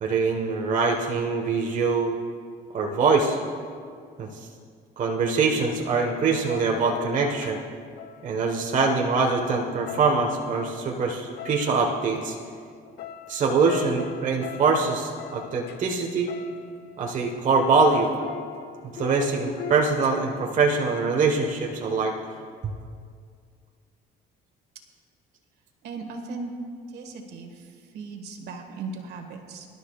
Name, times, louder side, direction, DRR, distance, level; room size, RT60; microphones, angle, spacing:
voice 1, 0.0-2.2 2.7-3.4 4.2-4.5 5.0-7.6 8.2-12.4 13.3-16.3 17.0-18.1 18.9-22.1 22.6-22.7, right 4 dB, 50° right, 1 dB, 1.3 m, -23 dB
sound 1, 6.5-9.4 9.7-17.0 17.3-20.4, left 9 dB, 70° left, 0.9 m, -42 dB
voice 2, 25.8-26.5 26.9-29.7, right 4 dB, 75° right, 4 dB, 1.7 m, -37 dB
24.5 x 12.0 x 2.4 m, 2.1 s
cardioid pair, 110°, 17 cm